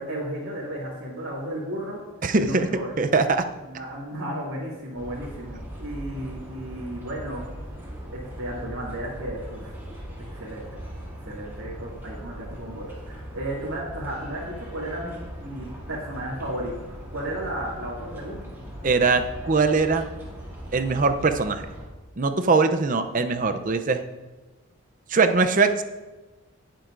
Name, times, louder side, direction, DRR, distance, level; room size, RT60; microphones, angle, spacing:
voice 1, 0.0-2.0 2.4-2.9 3.6-7.4 8.1-9.8 10.3-10.9 11.2-18.4, right 1 dB, 65° right, -7 dB, 2.2 m, -34 dB
voice 2, 2.2-2.7 3.0-3.4 18.8-20.1 20.7-21.7 22.2-24.0 25.1-25.8, right 4 dB, 35° right, 8 dB, 0.5 m, -21 dB
sound 1, 4.9-21.8, equal, 10° right, 2.7 m, -39 dB
19.0 x 7.6 x 2.5 m, 1.2 s
head